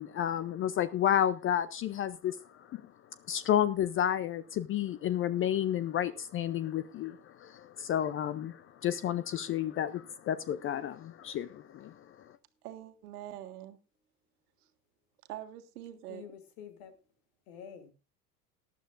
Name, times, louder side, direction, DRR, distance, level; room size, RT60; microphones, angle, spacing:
voice 1, 0.0-2.9 3.3-12.3, left 10 dB, 25° left, 0.5 m, -31 dB
voice 2, 12.6-13.8 15.3-16.3, right 13 dB, 65° right, 1.7 m, -44 dB
voice 3, 16.1-16.9 17.5-17.9, left 8 dB, 60° left, 2.8 m, -48 dB
18.5 x 12.0 x 2.5 m
hypercardioid pair, 85°, 49 cm